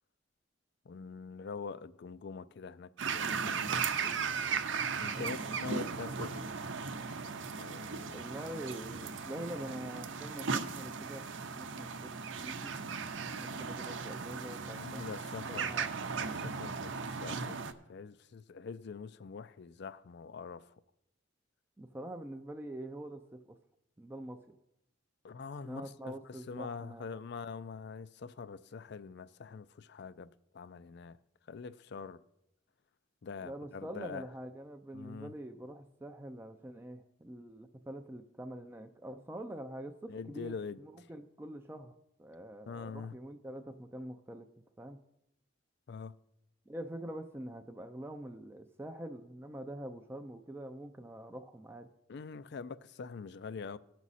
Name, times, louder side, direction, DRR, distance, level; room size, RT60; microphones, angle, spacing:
voice 1, 0.9-4.3 4.9-6.5 7.6-8.2 14.7-15.8 16.4-20.7 25.2-31.2 31.5-32.2 33.2-34.2 34.9-35.3 40.1-40.8 42.7-43.1 45.9-46.1 52.1-53.8, left 5 dB, 60° left, 0.4 m, -44 dB
sound 1, 3.0-17.7, right 5 dB, 75° right, 0.7 m, -37 dB
voice 2, 5.1-5.5 8.1-12.1 12.4-12.7 13.4-15.1 15.5-15.9 21.8-23.6 24.0-24.5 25.6-27.2 33.4-41.9 42.2-44.5 44.8-45.0 46.7-51.9, right 1 dB, 10° right, 0.4 m, -45 dB
18.0 x 6.1 x 4.1 m
head